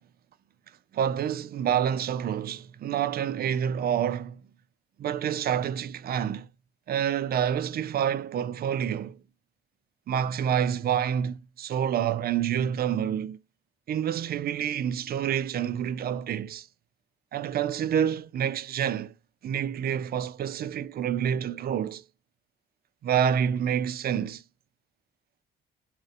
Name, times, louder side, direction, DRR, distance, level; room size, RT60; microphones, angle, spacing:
voice 1, 0.9-4.4 5.0-6.5 6.9-9.2 10.1-13.4 13.9-16.7 17.3-19.1 19.4-22.0 23.0-24.4, right 9 dB, 50° right, 0.4 m, -28 dB
2.5 x 2.1 x 2.3 m
cardioid pair, 90°, 20 cm